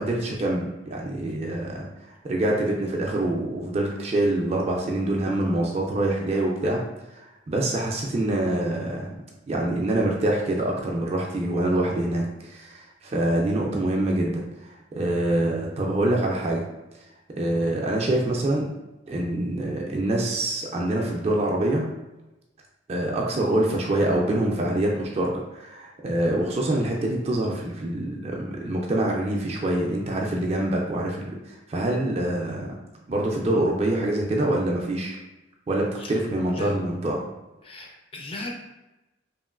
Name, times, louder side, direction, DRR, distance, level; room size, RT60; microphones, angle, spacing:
voice 1, 0.0-1.9 2.2-6.8 7.1-9.1 9.5-16.6 17.4-18.7 19.1-21.8 22.9-32.8 33.1-35.2 35.7-37.2, right 1 dB, 35° right, -1 dB, 0.3 m, -25 dB
voice 2, 37.6-38.5, left 2 dB, 30° left, 0 dB, 0.4 m, -37 dB
2.9 x 2.5 x 2.4 m, 1.0 s
head